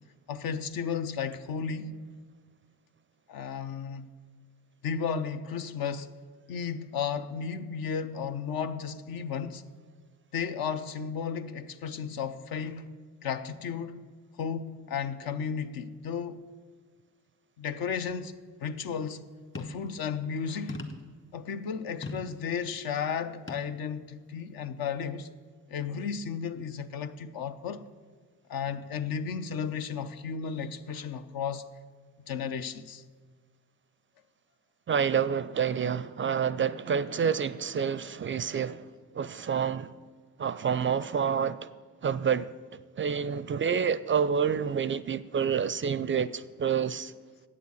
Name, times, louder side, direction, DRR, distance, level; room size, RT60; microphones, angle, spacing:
voice 1, 0.3-2.1 3.3-4.1 4.8-6.1 6.5-9.6 10.3-13.0 13.2-14.0 14.4-16.4 17.6-18.3 18.6-19.2 19.6-20.8 21.3-25.3 25.7-27.9 28.5-31.6 32.3-33.0, left 6 dB, 65° left, 0.7 m, -34 dB
sound 1, 19.5-19.9 20.7-21.2 22.0-22.4 23.5-23.7 24.4-24.5, left 2 dB, 35° left, 1.5 m, -38 dB
voice 2, 34.9-38.8 39.1-39.9 40.4-41.7 42.0-42.5 43.0-47.1, right 7 dB, 35° right, 0.4 m, -28 dB
8.4 x 6.9 x 8.4 m
hypercardioid pair, 50°, 38 cm